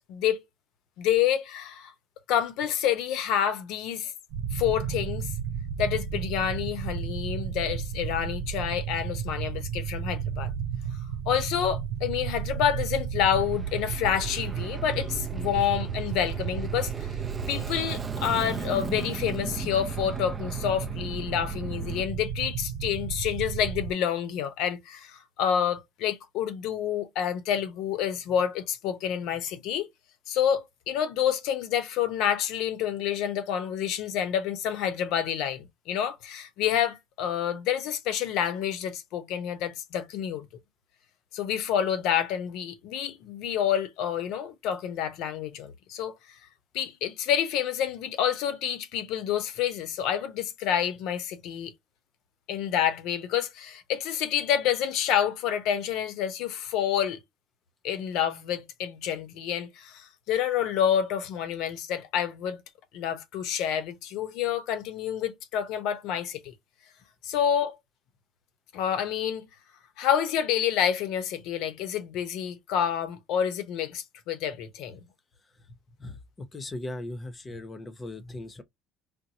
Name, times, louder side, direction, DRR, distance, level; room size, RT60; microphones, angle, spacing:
voice 1, 0.1-0.4 1.0-1.9 2.3-4.1 4.5-5.3 5.8-10.5 11.3-17.1 17.5-29.9 30.3-40.5 41.3-46.1 46.7-51.7 52.5-57.2 57.8-62.6 62.9-66.5 67.2-67.8 68.7-69.5 70.0-75.1, left 9 dB, 75° left, 0.9 m, -28 dB
sound 1, 4.3-23.9, right 8 dB, 85° right, 0.4 m, -33 dB
Aircraft, 13.2-22.0, right 4 dB, 20° right, 0.5 m, -40 dB
voice 2, 76.0-78.6, left 2 dB, 20° left, 0.8 m, -38 dB
4.4 x 2.2 x 2.8 m
cardioid pair, 130°, 0 cm